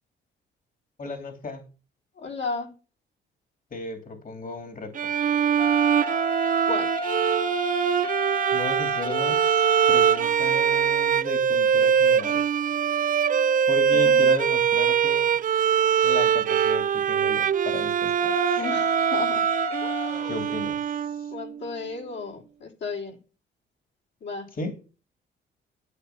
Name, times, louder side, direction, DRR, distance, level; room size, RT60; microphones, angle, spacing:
voice 1, 1.0-1.7 3.7-4.9 8.5-12.5 13.6-15.3 16.0-18.6 20.2-21.3 24.5-24.8, left 3 dB, 45° left, 2.9 m, -35 dB
voice 2, 2.2-2.7 6.7-6.9 13.9-14.3 18.6-19.4 19.8-20.5 21.3-23.2 24.2-24.5, left 4 dB, 65° left, 3.7 m, -34 dB
Bowed string instrument, 5.0-21.5, right 8 dB, 45° right, 0.5 m, -23 dB
sound 1, 5.6-10.2 18.2-20.1, left 1 dB, 30° left, 1.7 m, -31 dB
11.5 x 9.0 x 5.9 m
cardioid pair, 90°, 20 cm